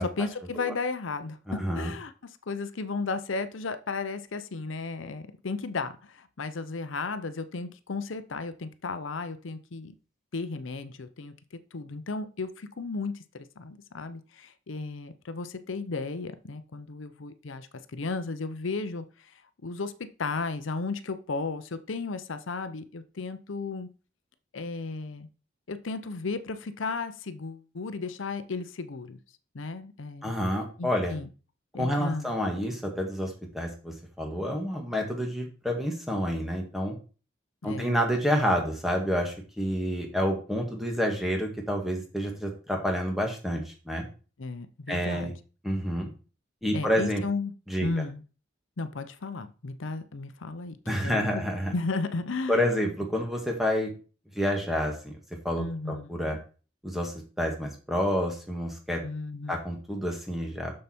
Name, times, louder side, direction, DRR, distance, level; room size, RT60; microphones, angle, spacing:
voice 1, 0.0-9.9 10.3-11.3 11.7-19.3 19.6-23.9 24.5-25.3 25.7-29.2 29.5-30.3 30.8-31.3 31.7-32.3 37.6-38.0 44.4-45.3 46.7-47.5 47.8-48.2 48.8-50.8 51.0-51.5 51.7-52.7 55.6-56.4 59.0-59.6, left 3 dB, 90° left, 11 dB, 0.7 m, -34 dB
voice 2, 1.5-1.9 30.2-31.2 31.7-37.0 37.6-44.0 44.9-45.3 45.6-46.1 46.6-47.2 47.7-47.9 50.9-51.7 52.5-53.9 54.3-55.1 55.4-56.4 56.8-59.0 59.5-60.7, equal, ahead, 1 dB, 1.6 m, -29 dB
6.9 x 6.6 x 4.3 m, 0.35 s
head